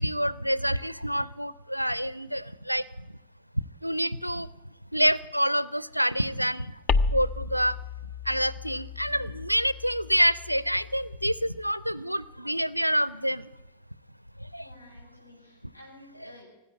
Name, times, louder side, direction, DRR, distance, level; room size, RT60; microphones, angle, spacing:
voice 1, 0.0-2.8 3.8-4.5 4.9-6.8 7.1-7.8 8.3-13.5 14.5-14.6, equal, 90° right, 19 dB, 0.4 m, -27 dB
sound 1, 6.9-11.7, left 4 dB, 30° left, 0.6 m, -32 dB
voice 2, 9.0-9.3 14.6-16.5, left 1 dB, 85° left, -3 dB, 6.6 m, -52 dB
18.5 x 8.9 x 8.3 m, 1.0 s
figure-of-eight pair, 90°, 0 cm